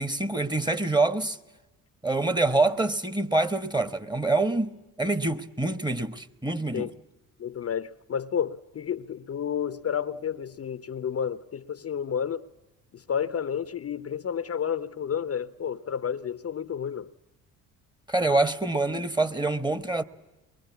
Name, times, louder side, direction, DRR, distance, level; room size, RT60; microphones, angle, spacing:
voice 1, 0.0-1.4 2.0-6.9 18.1-20.0, right 2 dB, 10° right, 1.2 m, -26 dB
voice 2, 7.4-12.5 12.9-17.1, left 8 dB, 35° left, 0.8 m, -31 dB
23.5 x 22.0 x 8.5 m
hypercardioid pair, 55°, 41 cm